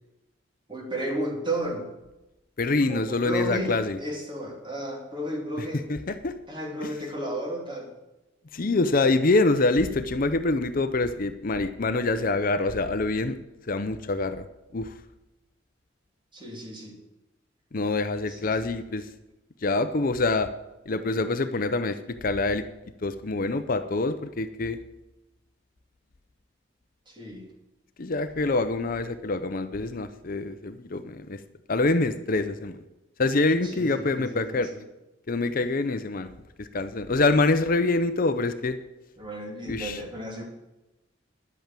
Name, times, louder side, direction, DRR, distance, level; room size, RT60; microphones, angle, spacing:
voice 1, 0.7-1.9 2.9-5.8 6.5-7.9 16.3-17.0 18.3-18.6 27.1-27.5 33.6-34.8 39.2-40.4, right 1 dB, 25° right, 1 dB, 2.8 m, -33 dB
voice 2, 2.6-4.0 5.6-6.3 6.8-6.9 8.5-13.3 13.6-14.5 14.7-14.9 17.7-19.1 19.6-20.5 20.9-22.6 23.0-24.8 28.0-31.4 31.7-32.8 33.2-34.7 35.3-36.3 36.6-38.8 39.7-40.0, left 3 dB, 45° left, 10 dB, 0.6 m, -25 dB
10.5 x 8.6 x 7.5 m, 0.98 s
head